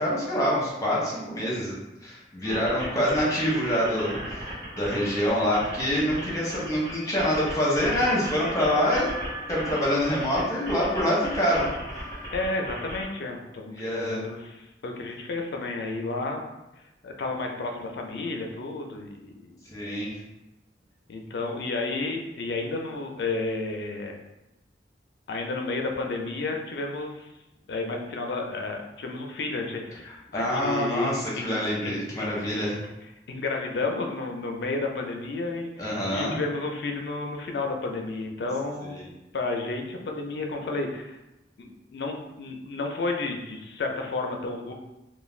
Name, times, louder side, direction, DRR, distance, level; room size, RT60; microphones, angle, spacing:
voice 1, 0.0-1.7 2.0-4.5 4.8-9.1 9.5-11.7 13.7-14.2 19.7-20.1 30.3-32.8 35.8-36.4 38.8-39.0, equal, 20° left, -6 dB, 0.7 m, -26 dB
sound 1, 2.4-13.0, equal, 25° right, 1.1 m, -37 dB
voice 2, 12.3-16.4 17.0-19.5 21.1-24.2 25.3-27.3 27.7-31.5 31.8-32.6 33.3-39.0 39.3-41.2 41.6-44.7, left 3 dB, 65° left, 2 dB, 0.4 m, -32 dB
2.4 x 2.2 x 3.1 m, 0.97 s
head